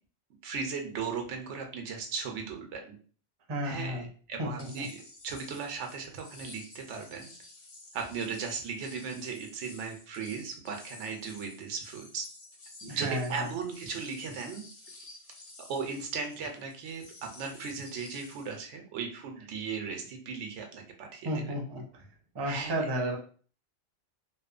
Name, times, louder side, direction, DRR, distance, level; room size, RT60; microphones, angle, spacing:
voice 1, 0.4-3.0 3.6-7.3 7.9-12.3 12.9-14.7 15.7-21.4 22.5-22.7, right 5 dB, 85° right, 4 dB, 0.9 m, -37 dB
voice 2, 3.5-4.1 4.4-4.8 12.8-13.5 21.2-21.8 22.3-23.2, equal, 30° right, 0 dB, 0.4 m, -32 dB
sound 1, 4.6-18.6, left 2 dB, 40° left, 0.6 m, -52 dB
2.9 x 2.1 x 2.4 m, 0.41 s
omnidirectional pair, 1.2 m